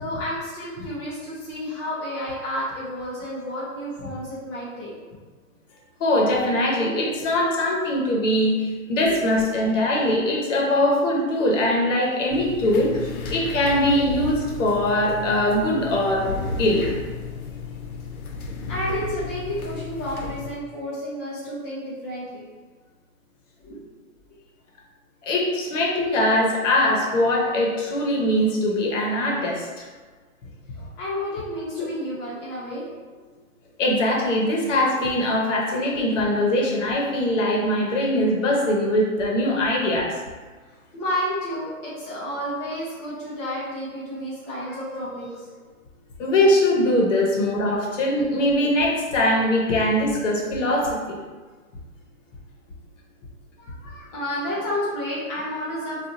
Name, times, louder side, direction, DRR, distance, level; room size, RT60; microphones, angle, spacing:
voice 1, 0.0-4.9 9.0-9.3 18.7-22.4 23.6-23.8 31.0-32.9 40.9-45.5 47.2-47.3 53.6-56.1, equal, 20° left, -9 dB, 0.4 m, -31 dB
voice 2, 6.0-16.9 25.2-29.9 31.8-31.9 33.8-40.1 46.2-51.2, left 1 dB, 60° left, -2 dB, 0.9 m, -22 dB
sound 1, 12.3-20.5, left 4 dB, 85° left, 0.6 m, -33 dB
2.7 x 2.3 x 2.6 m, 1.4 s
hypercardioid pair, 125°, 42 cm